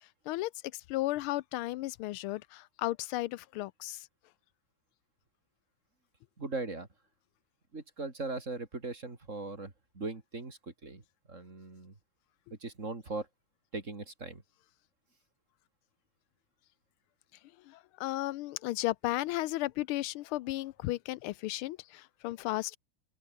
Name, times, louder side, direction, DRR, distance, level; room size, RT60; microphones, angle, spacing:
voice 1, 0.9-4.0 17.7-22.8, left 17 dB, 90° left, 1.5 m, -34 dB
voice 2, 6.4-6.9 7.7-11.9 12.6-13.3 13.7-14.4, right 3 dB, 35° right, 3.6 m, -39 dB
omnidirectional pair, 2.3 m